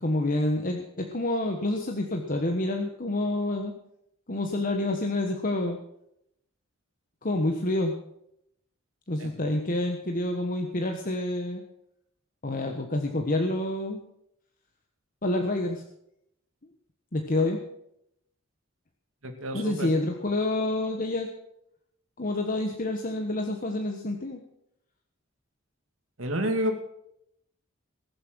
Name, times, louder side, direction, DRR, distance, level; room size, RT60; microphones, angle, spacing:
voice 1, 0.0-3.7 4.3-5.8 7.2-7.9 9.1-11.6 12.4-14.0 15.2-15.8 17.1-17.6 19.5-21.3 22.2-24.4, left 1 dB, 45° left, 3 dB, 1.3 m, -28 dB
voice 2, 19.2-19.9 26.2-26.8, equal, 90° right, 4 dB, 2.4 m, -29 dB
20.0 x 7.7 x 6.3 m, 0.77 s
head